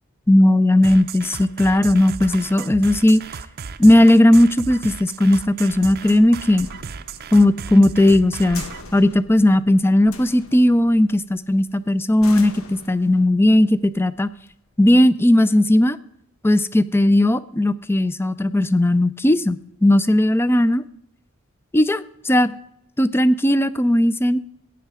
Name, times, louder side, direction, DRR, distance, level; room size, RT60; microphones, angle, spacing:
voice 1, 0.3-3.2 3.8-6.7 7.3-8.7 8.9-14.3 14.8-16.0 16.4-20.8 21.7-22.5 23.0-24.4, left 1 dB, 10° left, 16 dB, 0.4 m, -16 dB
sound 1, 0.8-8.8, right 6 dB, 50° right, 0.6 m, -34 dB
sound 2, 2.5-15.1, left 2 dB, 90° left, 1.4 m, -43 dB
15.5 x 9.1 x 4.9 m, 0.78 s
head